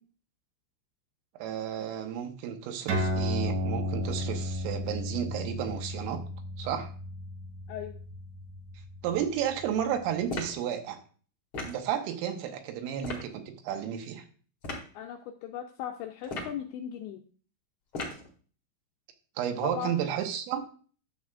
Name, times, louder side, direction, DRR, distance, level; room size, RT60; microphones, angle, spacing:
voice 1, 1.4-6.2 6.6-6.9 9.0-11.0 11.6-14.3 19.4-20.6, right 9 dB, 80° right, 5 dB, 3.6 m, -32 dB
sound 1, 2.9-9.8, equal, 60° right, 2.6 m, -34 dB
voice 2, 7.7-8.0 14.9-17.2 19.6-19.9, left 10 dB, 90° left, 4 dB, 2.6 m, -38 dB
sound 2, 10.3-10.6 11.5-11.8 13.0-13.3 14.6-14.9 16.2-16.6 17.9-18.3, left 2 dB, 55° left, 1.4 m, -36 dB
11.0 x 7.3 x 2.4 m, 0.41 s
omnidirectional pair, 5.8 m